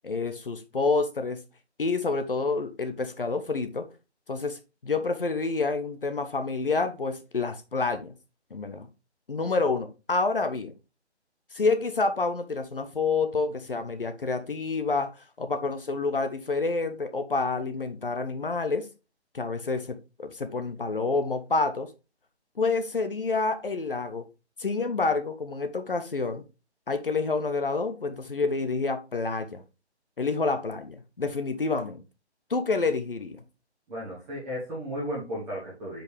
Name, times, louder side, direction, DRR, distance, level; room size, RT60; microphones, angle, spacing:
voice 1, 0.0-1.4 1.8-3.9 4.3-8.1 8.5-8.9 9.3-10.7 11.5-15.1 15.4-18.9 19.3-21.9 22.6-24.3 24.6-26.4 26.9-29.6 30.2-32.0 32.5-33.4, left 3 dB, 50° left, 1.1 m, -28 dB
voice 2, 33.9-36.0, equal, 5° right, 1.4 m, -34 dB
7.3 x 5.2 x 3.4 m
hypercardioid pair, 175°, 34 cm